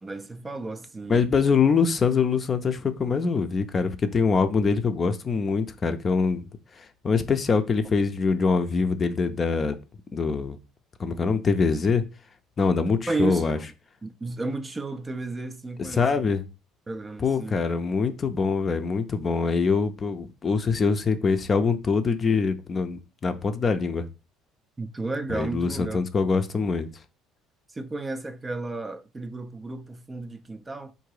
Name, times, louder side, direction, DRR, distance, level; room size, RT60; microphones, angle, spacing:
voice 1, 0.0-1.2 13.1-13.7 14.0-16.1 16.9-17.6 24.8-26.1 27.7-30.9, right 3 dB, 20° right, 0.5 m, -33 dB
voice 2, 1.1-6.4 7.0-9.8 10.1-10.6 11.0-12.0 12.6-13.6 15.9-16.4 17.2-24.0 25.3-26.9, left 5 dB, 30° left, 0.5 m, -24 dB
3.8 x 2.7 x 4.7 m
cardioid pair, 110°, 0 cm